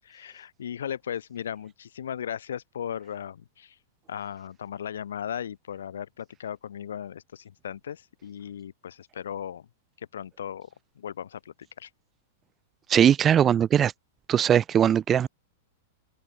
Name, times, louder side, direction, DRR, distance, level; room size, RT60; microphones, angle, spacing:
voice 1, 0.0-3.8 4.1-9.7 10.0-10.7 11.0-11.9, left 9 dB, 80° left, 5.9 m, -37 dB
voice 2, 12.9-13.9 14.3-15.3, right 9 dB, 25° right, 0.4 m, -20 dB
hypercardioid pair, 110°, 0 cm